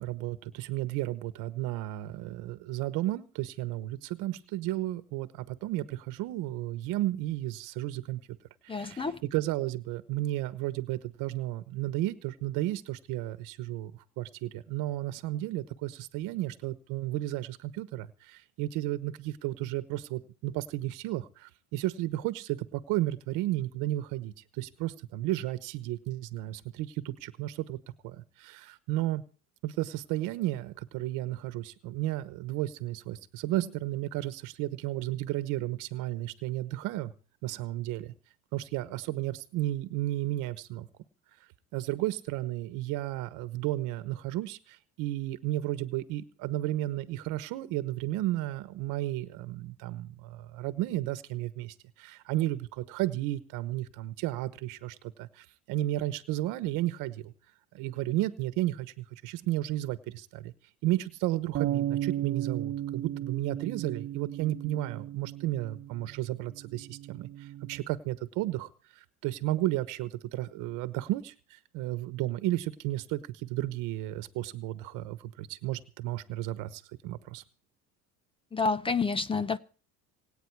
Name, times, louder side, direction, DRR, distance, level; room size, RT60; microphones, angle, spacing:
voice 1, 0.0-8.2 8.6-9.0 9.3-13.9 14.2-27.8 28.0-29.2 29.6-37.1 37.4-38.1 38.5-40.9 41.7-57.3 57.7-60.5 60.8-68.7 69.0-77.4, right 15 dB, 80° right, 1.2 m, -33 dB
voice 2, 8.7-9.2 78.5-79.6, left 4 dB, 15° left, 0.6 m, -29 dB
sound 1, 61.5-67.8, right 12 dB, 45° right, 1.2 m, -35 dB
26.5 x 9.1 x 4.7 m
cardioid pair, 140°, 31 cm